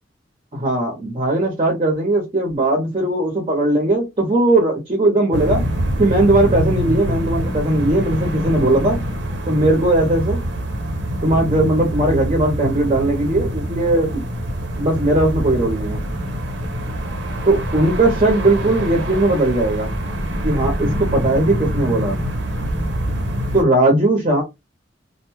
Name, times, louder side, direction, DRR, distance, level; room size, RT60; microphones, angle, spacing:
voice 1, 0.5-5.6 6.0-9.0 9.5-10.4 11.2-14.2 14.8-16.0 17.4-19.9 20.4-22.1 23.5-24.4, right 2 dB, 35° right, 0 dB, 0.8 m, -18 dB
sound 1, 5.3-23.6, equal, 75° right, 0.7 m, -25 dB
2.6 x 2.2 x 3.0 m, 0.22 s
head